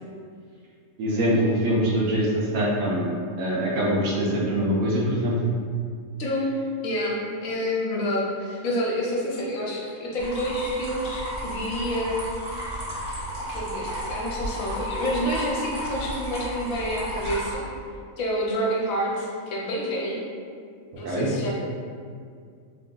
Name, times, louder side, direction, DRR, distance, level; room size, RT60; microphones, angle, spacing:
voice 1, 1.0-3.1 3.4-5.3 21.0-21.3, equal, 70° right, -4 dB, 1.1 m, -23 dB
voice 2, 6.8-12.2 13.5-17.6 18.2-20.2 21.0-21.5, equal, 70° left, -3 dB, 1.1 m, -28 dB
sound 1, 10.2-17.5, equal, 35° right, 1.0 m, -33 dB
3.0 x 2.6 x 3.6 m, 2.2 s
omnidirectional pair, 1.5 m